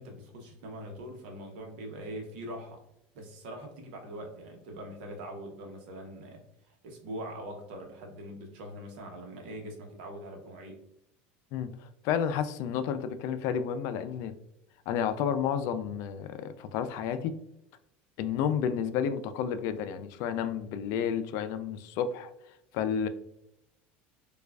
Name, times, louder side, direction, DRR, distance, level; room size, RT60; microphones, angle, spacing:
voice 1, 0.0-2.8 3.1-10.8, right 1 dB, 75° right, 2 dB, 0.9 m, -42 dB
voice 2, 11.5-14.3 14.9-17.3 18.2-22.3 22.7-23.1, left 8 dB, 60° left, 10 dB, 0.4 m, -31 dB
4.6 x 2.4 x 2.3 m, 0.82 s
supercardioid pair, 110°, 6 cm